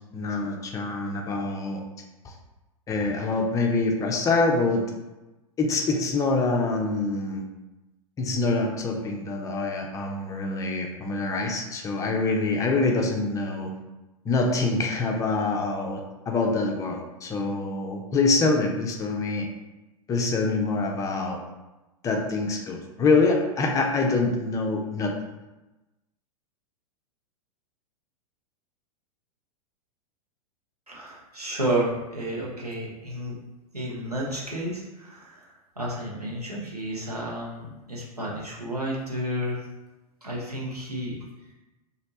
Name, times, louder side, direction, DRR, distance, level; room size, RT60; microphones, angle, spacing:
voice 1, 0.1-1.8 2.2-2.3 2.9-4.8 5.6-7.4 8.2-13.7 14.2-19.5 20.1-21.4 22.0-25.2, left 3 dB, 15° left, 2 dB, 0.5 m, -25 dB
voice 2, 30.9-33.3 33.7-39.6 40.2-41.2, right 1 dB, 90° right, -4 dB, 1.1 m, -31 dB
3.2 x 2.7 x 4.0 m, 1.1 s
figure-of-eight pair, 95°, 19 cm